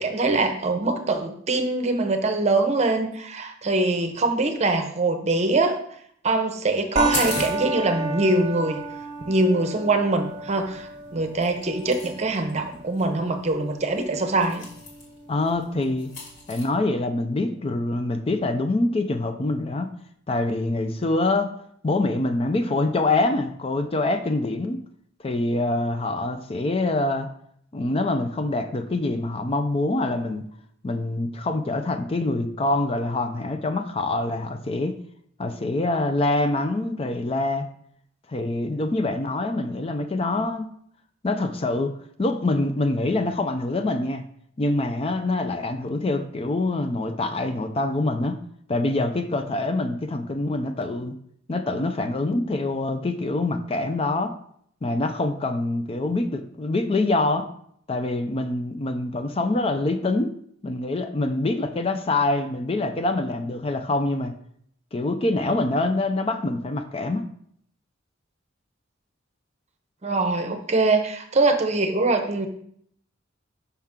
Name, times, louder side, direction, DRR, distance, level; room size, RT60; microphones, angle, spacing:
voice 1, 0.0-5.8 6.2-8.8 9.3-14.6 70.0-72.5, right 2 dB, 35° right, 6 dB, 0.8 m, -23 dB
sound 1, 7.0-15.9, right 2 dB, 20° right, 1.2 m, -34 dB
sound 2, 7.1-16.6, left 2 dB, 60° left, 2.0 m, -39 dB
voice 2, 15.3-16.1 16.5-19.9 20.3-21.5 21.8-24.8 25.2-27.3 27.7-30.4 30.8-35.0 35.4-37.7 38.3-40.7 41.2-41.9 42.2-44.2 44.6-48.4 48.7-51.2 51.5-54.3 54.8-57.5 57.9-60.3 60.6-64.3 64.9-67.3, left 2 dB, 30° left, 7 dB, 0.4 m, -25 dB
5.8 x 5.6 x 3.6 m, 0.66 s
head